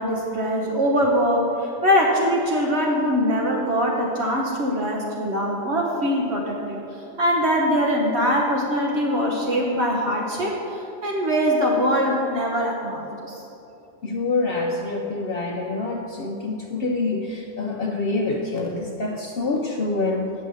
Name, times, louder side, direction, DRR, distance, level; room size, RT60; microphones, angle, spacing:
voice 1, 0.0-6.8 7.2-13.4, equal, 60° right, -2 dB, 1.3 m, -22 dB
voice 2, 14.0-20.3, left 3 dB, 55° left, 1 dB, 0.8 m, -26 dB
8.9 x 5.5 x 8.1 m, 2.8 s
omnidirectional pair, 1.3 m